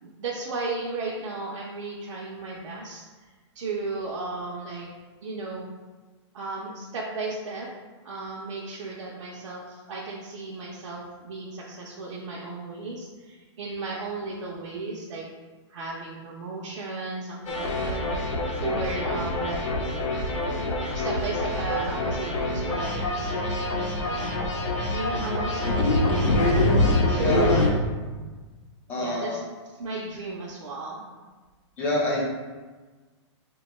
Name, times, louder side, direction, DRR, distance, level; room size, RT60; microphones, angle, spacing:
voice 1, 0.0-3.3 3.5-4.9 5.2-5.7 6.3-7.7 8.0-15.3 15.7-18.1 18.6-19.7 20.9-24.5 24.9-26.3 27.1-27.7 29.0-29.4 29.7-31.1, right 3 dB, 75° right, -4 dB, 0.6 m, -34 dB
sound 1, 17.5-27.7, left 2 dB, 75° left, 0.7 m, -25 dB
voice 2, 28.9-29.4 31.8-32.2, left 2 dB, 10° left, -4 dB, 0.3 m, -27 dB
3.5 x 2.2 x 3.0 m, 1.3 s
hypercardioid pair, 175°, 16 cm